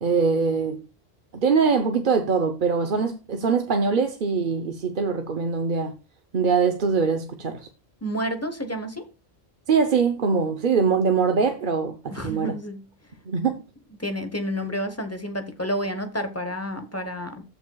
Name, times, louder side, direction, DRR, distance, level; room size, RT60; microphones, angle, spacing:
voice 1, 0.0-0.8 1.3-5.9 6.3-7.7 9.7-12.5 13.3-13.6, right 5 dB, 50° right, 0.9 m, -23 dB
voice 2, 8.0-9.1 12.1-12.8 14.0-17.4, equal, 15° left, 0.9 m, -30 dB
14.0 x 5.8 x 2.3 m
omnidirectional pair, 1.1 m